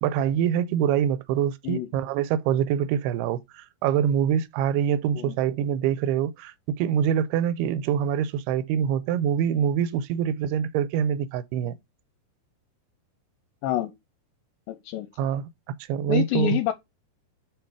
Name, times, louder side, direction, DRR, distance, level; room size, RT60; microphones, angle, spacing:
voice 1, 0.0-11.8 15.2-15.4 15.9-16.6, right 9 dB, 90° right, 2.6 m, -25 dB
voice 2, 13.6-13.9 14.7-15.1 16.1-16.7, left 13 dB, 80° left, 2.2 m, -27 dB
5.5 x 4.4 x 4.6 m
omnidirectional pair, 4.5 m